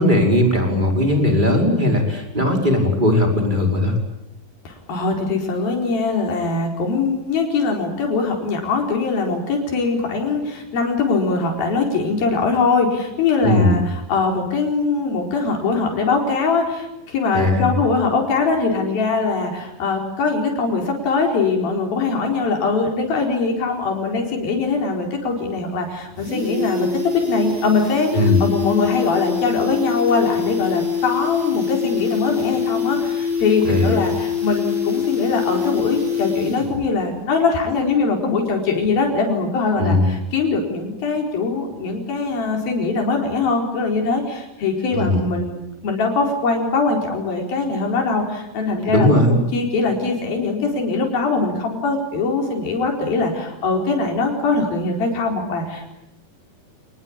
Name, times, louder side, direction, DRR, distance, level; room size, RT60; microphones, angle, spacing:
voice 1, 0.0-4.0 13.4-13.8 17.3-17.7 28.1-28.4 33.6-33.9 39.8-40.1 44.9-45.2 48.9-49.4, left 1 dB, 10° right, 2 dB, 5.4 m, -18 dB
voice 2, 4.6-28.1 28.4-55.8, left 4 dB, 85° left, 1 dB, 6.3 m, -22 dB
sound 1, 25.3-25.4 25.7-25.8 26.0-36.9 37.1-37.2, left 6 dB, 50° right, 8.8 m, -24 dB
29.0 x 20.5 x 8.8 m, 0.90 s
omnidirectional pair, 4.1 m